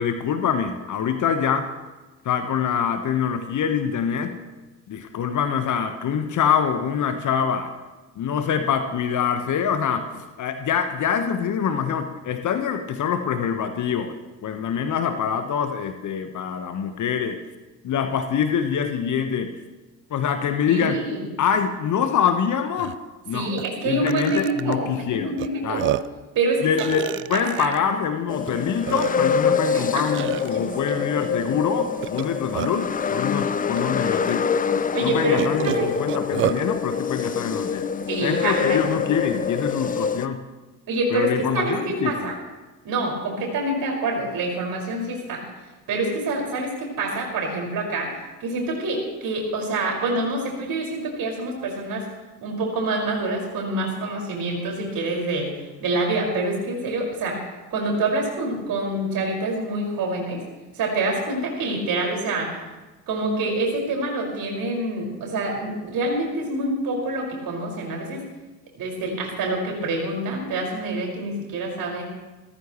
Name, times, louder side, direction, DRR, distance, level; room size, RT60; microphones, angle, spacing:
voice 1, 0.0-1.7 2.2-4.3 4.9-7.7 8.2-14.1 14.4-17.4 17.8-19.6 20.1-21.0 21.4-23.0 23.3-23.5 23.8-25.3 25.6-25.9 26.6-34.5 35.0-37.8 38.2-40.4 41.1-42.3, left 7 dB, 40° left, 8 dB, 1.3 m, -25 dB
voice 2, 20.7-21.2 23.3-25.9 26.4-26.9 27.3-27.8 29.7-30.0 30.5-30.9 34.9-35.9 38.1-38.8 40.9-42.3 42.8-45.4 45.9-52.1 52.4-55.5 55.8-57.4 57.7-60.4 60.7-62.6 63.1-68.2 68.8-72.0, right 2 dB, 45° right, 0 dB, 5.8 m, -26 dB
Burping eructation, 22.3-22.4 22.7-22.9 23.6-23.7 24.1-24.7 25.4-25.5 25.8-26.2 26.8-27.8 28.5-28.6 28.9-29.4 30.1-30.5 32.0-32.9 33.8-33.9 34.3-34.4 35.4-36.6, right 14 dB, 30° right, 0.4 m, -29 dB
sound 1, 28.3-40.3, left 6 dB, 20° left, 0.6 m, -25 dB
28.5 x 14.0 x 3.2 m, 1.2 s
figure-of-eight pair, 60°, 47 cm